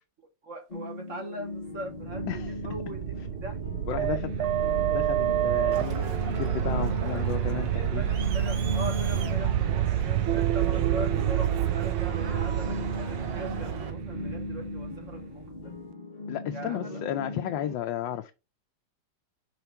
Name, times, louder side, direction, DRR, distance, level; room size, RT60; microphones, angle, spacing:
voice 1, 0.4-3.0 3.4-3.6 3.8-4.5 7.0-15.6 16.5-17.0, right 1 dB, 45° right, 1.2 m, -41 dB
sound 1, 0.7-17.7, left 3 dB, 40° left, 0.6 m, -38 dB
sound 2, 1.9-15.6, right 12 dB, 85° right, 1.4 m, -28 dB
voice 2, 3.9-4.2 4.9-8.0 16.3-18.3, left 11 dB, 75° left, 1.2 m, -33 dB
Crowd, 5.7-13.9, right 5 dB, 65° right, 1.7 m, -41 dB
5.8 x 3.6 x 5.7 m
omnidirectional pair, 2.2 m